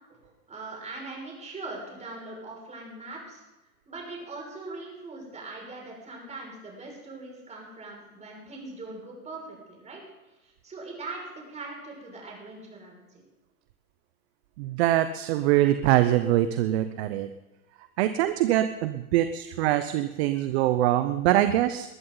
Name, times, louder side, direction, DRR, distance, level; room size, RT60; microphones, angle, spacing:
voice 1, 0.2-3.4 3.9-10.0 10.4-13.2, right 3 dB, 15° right, -1 dB, 6.0 m, -41 dB
voice 2, 14.6-17.3 18.0-21.9, right 13 dB, 45° right, 11 dB, 0.9 m, -23 dB
21.0 x 13.5 x 4.0 m, 1.1 s
hypercardioid pair, 130°, 45 cm